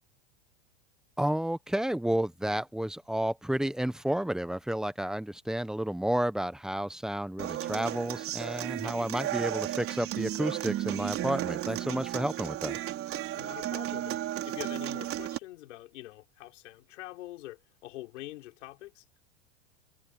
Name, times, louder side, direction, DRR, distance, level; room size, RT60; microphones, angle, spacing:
voice 1, 1.2-12.8, right 1 dB, ahead, 0.9 m, -31 dB
Human voice / Acoustic guitar, 7.4-15.4, right 13 dB, 35° right, 4.4 m, -34 dB
voice 2, 13.3-19.2, left 17 dB, 80° left, 6.6 m, -45 dB
supercardioid pair, 130°, 37 cm